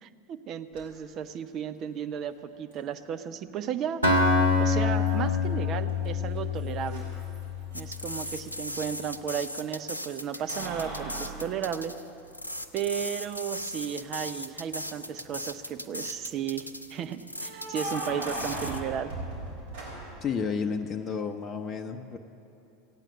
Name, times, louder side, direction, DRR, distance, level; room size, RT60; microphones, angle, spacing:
voice 1, 0.0-4.0 4.6-7.1 7.7-12.0 12.7-19.1, right 8 dB, 40° right, 9 dB, 0.7 m, -34 dB
Keys jangling, 0.7-0.8 2.7-2.8 5.1-5.6 5.9-9.1 10.3-12.5 12.9-13.0 14.8-15.4 17.3-20.3, right 2 dB, 60° right, 4.1 m, -39 dB
Acoustic guitar, 4.0-7.9, left 4 dB, 80° right, 1.6 m, -25 dB
sound 1, 7.7-18.8, left 1 dB, 85° left, 0.5 m, -38 dB
voice 2, 20.2-22.2, left 6 dB, 30° left, 4 dB, 0.7 m, -31 dB
15.5 x 9.1 x 8.5 m, 2.7 s
figure-of-eight pair, 80°, 0 cm